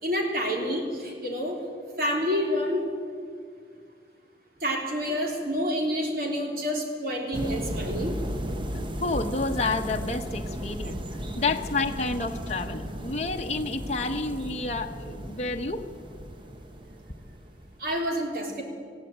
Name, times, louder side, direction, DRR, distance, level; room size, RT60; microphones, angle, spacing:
voice 1, 0.0-1.6 2.0-2.9 4.6-8.2 17.8-18.6, equal, 55° right, 1 dB, 3.7 m, -28 dB
sound 1, 7.3-17.8, equal, 30° right, 1.0 m, -35 dB
voice 2, 9.0-15.9, left 3 dB, 40° left, 3 dB, 1.0 m, -30 dB
20.0 x 15.5 x 8.8 m, 2.1 s
head